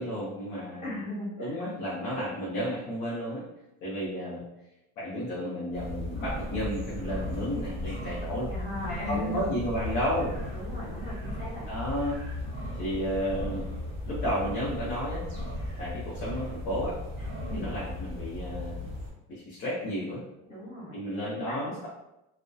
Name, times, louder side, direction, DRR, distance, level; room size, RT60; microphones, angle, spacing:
voice 1, 0.0-0.9 1.4-3.4 3.8-4.4 5.0-8.5 9.1-10.4 11.7-12.2 12.8-13.7 14.1-15.3 15.8-17.0 17.5-18.9 19.3-20.2 20.9-21.9, equal, 40° left, -7 dB, 0.6 m, -32 dB
voice 2, 0.8-1.6 8.5-9.5 10.5-11.7 17.5-17.7 20.5-21.9, equal, 20° left, -9 dB, 1.2 m, -37 dB
Roaring male Deer in Mating season, 5.7-19.1, left 1 dB, 40° right, 1.1 m, -36 dB
2.6 x 2.1 x 2.3 m, 0.91 s
cardioid pair, 175°, 31 cm